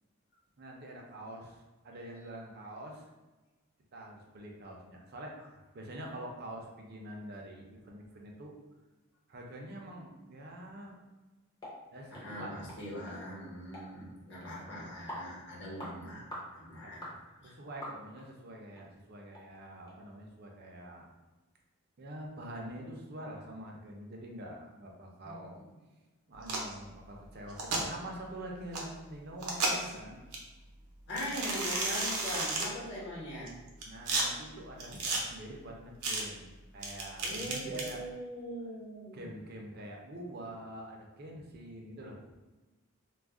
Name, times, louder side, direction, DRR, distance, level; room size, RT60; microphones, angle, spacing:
voice 1, 0.6-3.0 3.9-8.5 9.3-11.0 11.9-12.6 16.8-16.9 17.4-21.1 22.0-25.6 26.3-30.2 33.8-36.5 36.7-38.0 39.1-42.2, right 1 dB, 45° right, 0 dB, 0.5 m, -45 dB
sound 1, 11.6-11.8 12.1-12.3 12.7-12.8 13.1-13.2 13.7-13.9 14.4-14.5 15.1-15.3 15.8-15.9 16.3-16.5 17.0-17.2 17.8-18.3 18.7-18.8 19.3-19.4 19.9-20.0, equal, 20° left, 0.5 m, -43 dB
voice 2, 12.1-17.1 17.4-17.5 25.2-25.7 31.1-33.5 37.2-39.3, equal, 50° left, -6 dB, 0.9 m, -41 dB
sound 2, 26.4-26.7 27.5-27.8 28.7-28.8 29.4-29.9 30.3-30.4 31.2-32.7 33.5-34.2 34.8-35.2 36.0-36.2 36.8-37.9, right 2 dB, 85° right, 0.6 m, -32 dB
2.3 x 2.0 x 3.5 m, 1.2 s
head